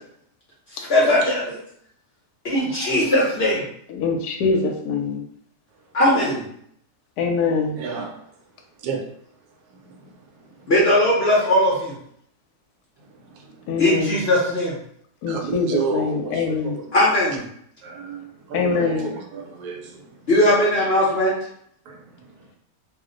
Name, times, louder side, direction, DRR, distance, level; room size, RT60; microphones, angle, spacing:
voice 1, 0.7-1.6 2.4-3.6 5.9-6.5 10.7-11.9 13.8-14.7 16.9-17.4 20.3-21.4, left 1 dB, 55° left, -6 dB, 0.7 m, -19 dB
voice 2, 2.5-2.9 7.8-8.2 8.8-9.0 13.3-13.5 15.3-16.9 17.8-20.1 21.9-22.0, right 5 dB, 75° right, 2 dB, 1.1 m, -30 dB
voice 3, 3.9-5.2 7.2-7.8 13.7-14.2 15.2-16.8 18.5-19.1, left 4 dB, 75° left, 3 dB, 1.0 m, -23 dB
2.8 x 2.0 x 3.6 m, 0.67 s
omnidirectional pair, 1.8 m